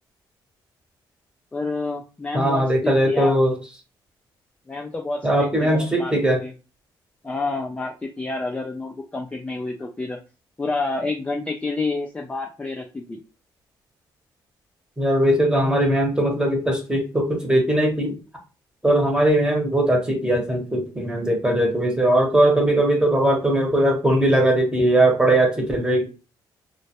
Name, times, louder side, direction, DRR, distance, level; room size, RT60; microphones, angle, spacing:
voice 1, 1.5-3.4 4.7-6.1 6.4-6.5 7.2-10.2 10.6-13.2, left 3 dB, 15° left, 1 dB, 0.3 m, -29 dB
voice 2, 2.3-3.5 5.2-6.4 15.0-18.2 18.8-26.0, right 1 dB, 10° right, 2 dB, 0.9 m, -19 dB
2.1 x 2.0 x 2.8 m, 0.32 s
cardioid pair, 85°, 9 cm